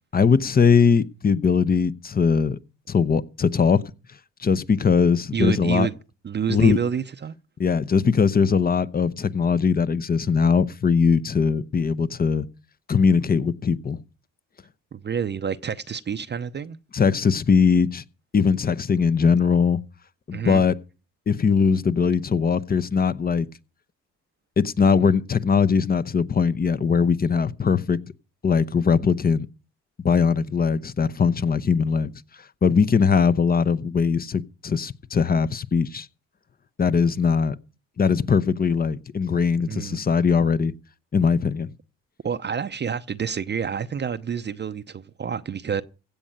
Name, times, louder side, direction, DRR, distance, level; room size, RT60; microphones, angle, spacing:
voice 1, 0.1-2.6 2.9-3.8 4.4-5.9 6.5-6.8 7.6-12.5 12.9-14.0 16.9-18.0 18.3-19.8 20.3-20.8 21.3-23.5 24.6-28.0 28.4-29.5 30.0-32.1 32.6-36.1 36.8-37.6 38.0-40.7 41.1-41.7, left 6 dB, 30° left, 0.8 m, -20 dB
voice 2, 5.3-5.9 6.2-7.3 14.9-16.8 20.3-20.6 39.7-40.0 42.2-45.8, right 7 dB, 35° right, 0.7 m, -28 dB
16.0 x 5.4 x 8.8 m
cardioid pair, 90°, 30 cm